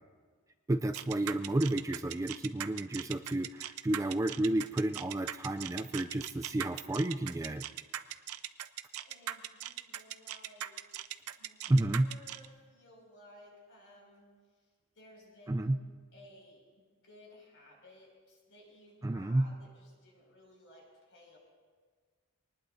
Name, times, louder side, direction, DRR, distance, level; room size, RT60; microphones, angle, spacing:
voice 1, 0.7-7.6 11.7-12.1 15.5-15.8 19.0-19.5, right 1 dB, 15° right, 8 dB, 0.3 m, -31 dB
sound 1, 0.9-12.5, right 11 dB, 75° right, 0.6 m, -40 dB
voice 2, 9.0-10.7 11.2-14.3 14.9-15.8 16.1-16.6 17.0-21.4, left 1 dB, 60° left, -2 dB, 6.0 m, -57 dB
24.0 x 19.5 x 2.7 m, 1.6 s
head